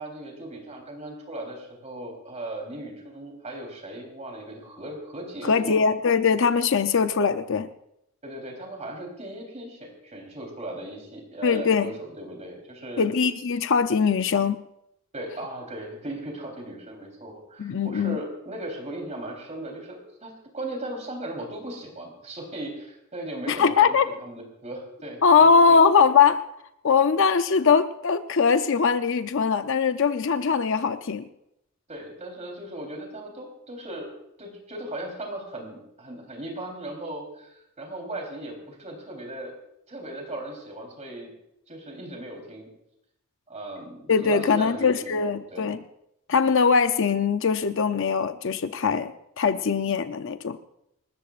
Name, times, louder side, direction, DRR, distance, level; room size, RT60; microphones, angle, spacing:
voice 1, 0.0-5.8 8.2-13.0 15.1-25.8 31.9-34.1 34.4-39.5 39.9-41.3 41.7-42.7 43.5-45.6, right 1 dB, 35° right, 1 dB, 3.7 m, -37 dB
voice 2, 5.4-7.7 11.4-11.9 13.0-14.6 17.6-18.2 23.5-24.0 25.2-26.4 26.8-31.3 44.1-45.8 46.3-49.1 49.4-50.6, left 5 dB, 65° left, 10 dB, 0.6 m, -21 dB
27.5 x 13.5 x 2.5 m, 0.83 s
head